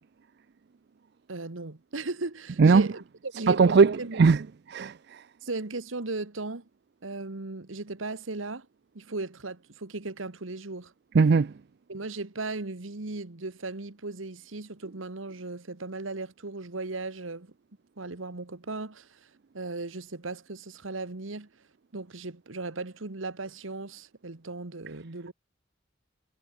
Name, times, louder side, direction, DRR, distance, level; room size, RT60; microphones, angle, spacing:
voice 1, 1.3-4.2 5.4-6.6 7.0-8.7 8.9-10.9 11.9-17.5 18.0-19.3 19.5-21.5 21.9-25.3, right 3 dB, 85° right, 1.5 m, -37 dB
voice 2, 3.5-4.4 4.7-4.9 11.1-11.5, right 4 dB, 55° right, 0.4 m, -19 dB
head